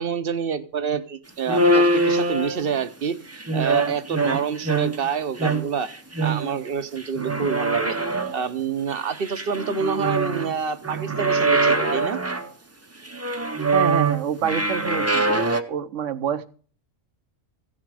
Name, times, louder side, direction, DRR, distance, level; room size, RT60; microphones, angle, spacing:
voice 1, 0.0-3.2 3.5-5.9 6.2-8.0 8.3-12.2, right 6 dB, 55° right, 0.9 m, -27 dB
sound 1, 1.5-2.8 3.3-5.1 5.4-6.7 7.0-8.4 8.9-10.5 10.8-12.5 13.1-15.6, right 2 dB, 15° right, 0.6 m, -23 dB
voice 2, 13.7-16.5, right 8 dB, 75° right, 1.1 m, -27 dB
15.5 x 7.3 x 4.8 m
omnidirectional pair, 1.3 m